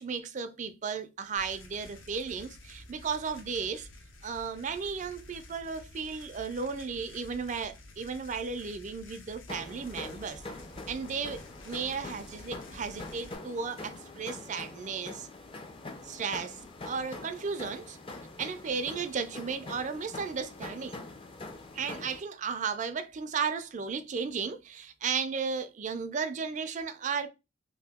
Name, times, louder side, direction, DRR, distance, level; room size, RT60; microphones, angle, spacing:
voice 1, 0.0-3.9 4.2-10.4 10.9-15.3 16.0-18.0 18.4-21.0 21.7-27.3, right 5 dB, 35° right, 0.4 m, -35 dB
sound 1, 1.4-13.4, left 2 dB, 75° left, 0.8 m, -51 dB
sound 2, 9.5-22.2, left 2 dB, 25° left, 0.5 m, -44 dB
2.8 x 2.6 x 3.4 m
head